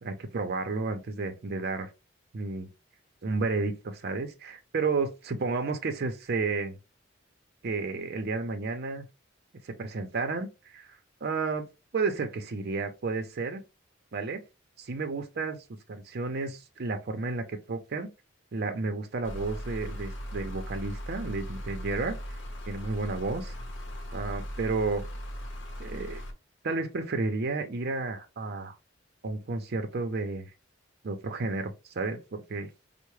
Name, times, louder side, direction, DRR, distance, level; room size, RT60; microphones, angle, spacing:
voice 1, 0.0-1.9 2.3-2.7 3.2-6.8 7.6-9.1 9.6-11.7 11.9-13.6 14.1-14.4 14.8-18.1 18.5-22.2 22.7-23.5 24.1-25.0 25.8-26.2 26.6-28.7 29.2-30.5 31.0-32.7, right 3 dB, 55° right, 0.5 m, -32 dB
sound 1, 19.2-26.3, equal, 70° left, 0.8 m, -38 dB
4.5 x 2.0 x 3.1 m
head